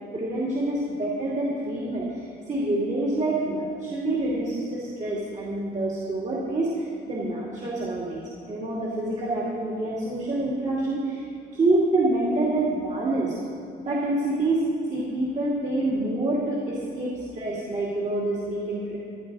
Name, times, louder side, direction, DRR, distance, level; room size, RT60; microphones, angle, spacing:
voice 1, 0.1-11.2 11.5-13.3 13.9-14.6 14.9-19.0, right 2 dB, 35° right, -5 dB, 2.6 m, -27 dB
14.0 x 11.0 x 4.9 m, 2.6 s
cardioid pair, 90°, 20 cm